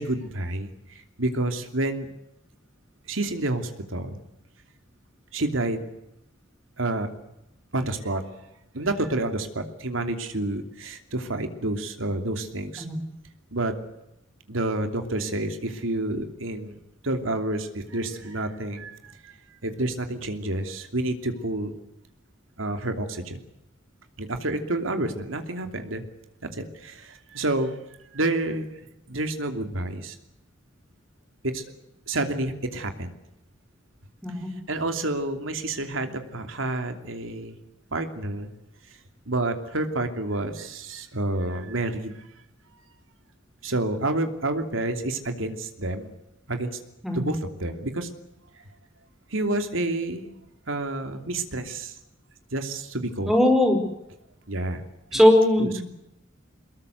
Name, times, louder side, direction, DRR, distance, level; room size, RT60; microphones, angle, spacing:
voice 1, 0.0-2.1 3.1-4.2 5.3-5.8 6.8-7.1 7.7-8.2 8.7-12.8 13.5-13.8 14.5-16.8 17.0-19.3 19.6-21.7 22.6-23.4 24.2-26.0 26.4-27.8 28.1-28.6 29.1-30.2 31.4-31.6 32.1-33.1 34.7-37.6 37.9-38.5 39.3-42.2 43.6-46.1 46.5-46.8 47.1-48.1 49.3-50.3 50.7-52.0 52.5-53.3 54.5-54.8 55.1-55.2 55.6-55.7, right 2 dB, 90° right, 6 dB, 2.9 m, -29 dB
voice 2, 53.3-53.8 55.1-55.8, left 1 dB, ahead, 5 dB, 4.7 m, -19 dB
23.5 x 21.5 x 8.0 m, 0.86 s
head